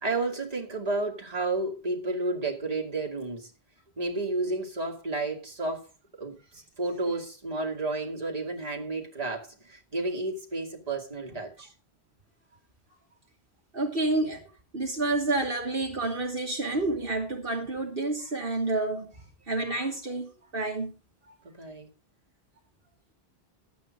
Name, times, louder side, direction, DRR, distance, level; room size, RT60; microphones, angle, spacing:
voice 1, 0.0-3.5 4.0-5.9 6.2-11.7 21.4-21.9, right 2 dB, 35° right, 2.4 m, -31 dB
voice 2, 13.7-14.4 14.7-19.1 19.5-20.9 21.3-21.4, right 2 dB, 60° right, 2.2 m, -29 dB
11.5 x 8.6 x 5.1 m
omnidirectional pair, 1.1 m